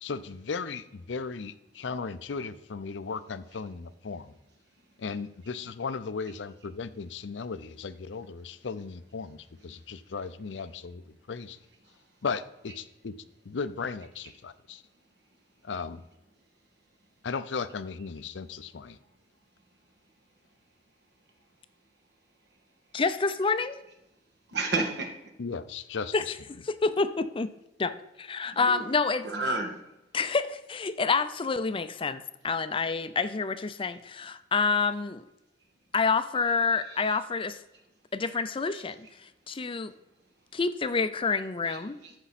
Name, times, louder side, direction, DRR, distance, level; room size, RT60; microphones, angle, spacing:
voice 1, 0.0-4.3 5.0-11.6 12.2-13.1 13.4-14.8 15.6-16.0 17.2-19.0 25.4-26.3, left 5 dB, 85° left, 13 dB, 0.5 m, -36 dB
voice 2, 22.9-23.8 26.1-26.2 26.7-27.5 27.8-27.9 28.3-29.2 30.1-35.2 35.9-37.6 38.1-39.0 39.5-39.9 40.5-42.0, left 4 dB, 30° left, 12 dB, 0.5 m, -28 dB
voice 3, 24.5-25.1 28.5-28.9 29.2-29.8 36.9-37.2 41.7-42.1, right 3 dB, 65° right, 2 dB, 1.8 m, -32 dB
14.0 x 5.4 x 4.1 m, 0.92 s
head